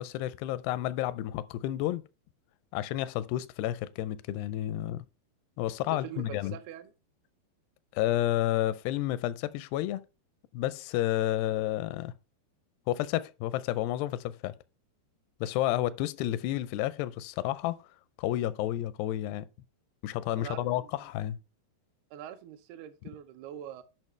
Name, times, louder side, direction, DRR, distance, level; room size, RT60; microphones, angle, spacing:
voice 1, 0.0-2.0 2.7-5.0 5.6-6.6 7.9-10.0 10.5-12.1 12.9-14.6 15.4-17.8 18.2-19.5 20.0-21.4, left 14 dB, 85° left, 2.6 m, -31 dB
voice 2, 5.9-6.9 20.4-20.9 22.1-23.8, right 11 dB, 80° right, 2.5 m, -43 dB
11.0 x 5.5 x 3.2 m
omnidirectional pair, 4.7 m